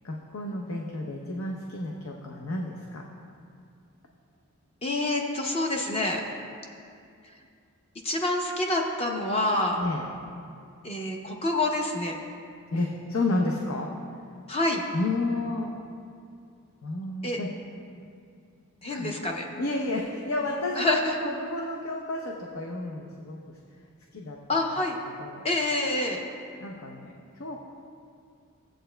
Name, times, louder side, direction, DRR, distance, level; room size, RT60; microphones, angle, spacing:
voice 1, 0.0-3.0 9.8-10.1 12.7-13.9 14.9-15.7 16.8-17.5 18.9-19.2 19.6-23.6 24.1-24.6 25.2-25.4 26.6-27.6, left 2 dB, 70° left, 0 dB, 0.7 m, -31 dB
voice 2, 4.8-6.2 8.0-9.8 10.8-12.2 14.5-14.9 17.2-17.4 18.8-19.5 20.8-21.1 24.5-25.0 25.4-26.2, left 2 dB, 25° left, 1 dB, 0.6 m, -27 dB
16.0 x 7.8 x 2.2 m, 2.4 s
head